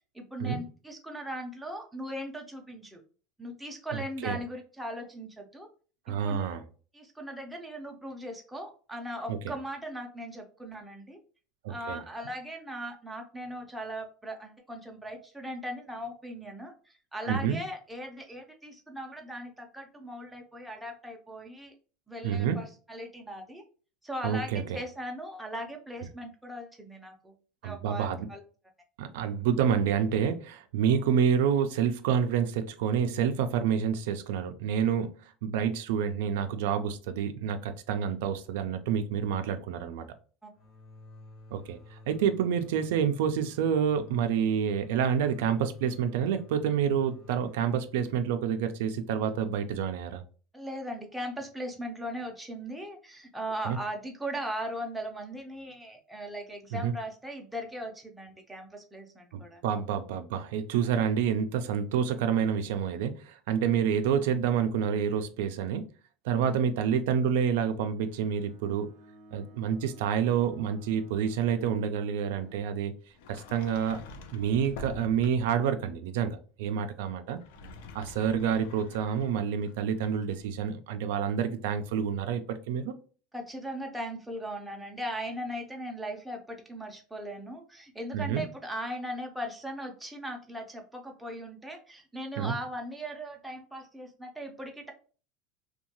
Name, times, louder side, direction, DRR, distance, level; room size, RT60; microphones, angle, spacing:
voice 1, 0.1-3.0 3.4-5.7 6.1-6.5 6.9-11.2 11.7-21.7 22.1-23.6 24.0-27.3 27.6-28.4 40.4-40.5 50.5-59.6 66.4-66.6 83.3-94.9, equal, 5° right, 0.5 m, -39 dB
voice 2, 3.9-4.4 6.1-6.6 9.3-9.5 11.6-12.0 17.3-17.6 22.2-22.6 24.2-24.8 27.6-28.3 29.0-35.2 35.4-40.1 41.5-50.2 53.6-53.8 56.7-56.9 59.3-65.9 66.2-68.9 69.3-72.9 73.3-74.0 74.3-77.4 77.9-82.9 88.1-88.4 92.4-92.5, right 8 dB, 85° right, 0.3 m, -28 dB
sound 1, 40.5-50.0, left 2 dB, 40° left, 0.7 m, -52 dB
Bowed string instrument, 67.9-72.8, right 1 dB, 50° right, 0.6 m, -54 dB
Sliding door, 73.1-75.7 77.3-80.5, left 3 dB, 85° left, 0.4 m, -47 dB
2.7 x 2.2 x 2.8 m
cardioid pair, 155°, 0 cm